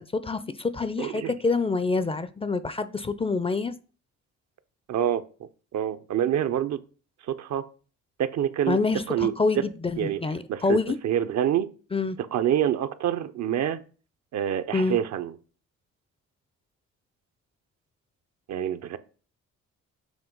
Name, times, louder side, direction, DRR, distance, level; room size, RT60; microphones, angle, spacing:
voice 1, 0.0-3.7 8.7-11.0 11.9-12.2 14.7-15.0, left 3 dB, 20° left, 0.4 m, -26 dB
voice 2, 1.0-1.3 4.9-6.8 7.2-7.6 8.2-8.8 9.1-9.3 10.0-10.2 10.5-11.7 12.3-13.8 14.3-15.3 18.5-19.0, right 10 dB, 65° right, 0.6 m, -27 dB
7.2 x 3.0 x 5.3 m
cardioid pair, 90°, 30 cm